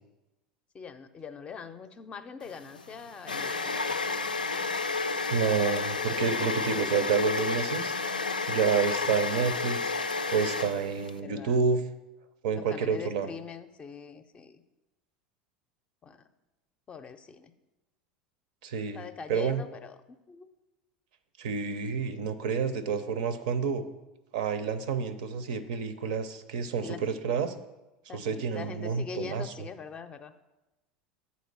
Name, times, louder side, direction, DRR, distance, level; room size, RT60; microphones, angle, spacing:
voice 1, 0.7-4.2 11.2-11.6 12.5-14.6 16.0-16.3 16.9-17.5 18.9-19.9 20.3-20.5 26.8-27.2 28.1-30.3, left 5 dB, 25° left, 10 dB, 0.5 m, -43 dB
sound 1, 2.5-11.2, left 4 dB, 85° left, 0.4 m, -31 dB
voice 2, 5.3-7.9 8.5-9.9 10.3-11.8 12.4-13.3 18.6-19.6 21.4-23.8 24.3-27.5 28.1-29.5, right 6 dB, 60° right, 12 dB, 0.5 m, -29 dB
8.0 x 4.2 x 5.9 m, 1.0 s
figure-of-eight pair, 75°, 4 cm